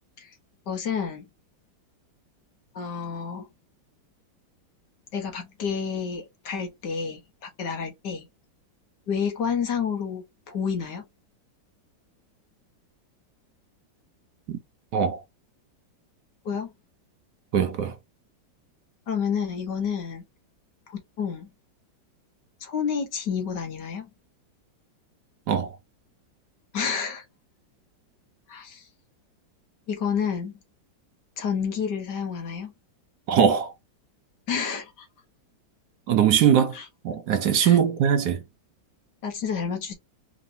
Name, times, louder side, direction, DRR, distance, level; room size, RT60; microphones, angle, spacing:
voice 1, 0.7-1.3 2.8-3.5 5.1-8.3 9.1-11.1 16.5-16.7 19.1-20.2 20.9-21.5 22.6-24.1 26.7-27.2 28.5-28.9 29.9-30.5 31.4-32.7 34.5-35.1 36.7-36.9 37.6-37.8 39.2-39.9, left 6 dB, 65° left, 1.7 m, -29 dB
voice 2, 17.5-17.9 25.5-25.7 33.3-33.7 36.1-36.8 37.0-38.4, right 8 dB, 70° right, 1.1 m, -21 dB
4.8 x 3.1 x 2.7 m
omnidirectional pair, 2.1 m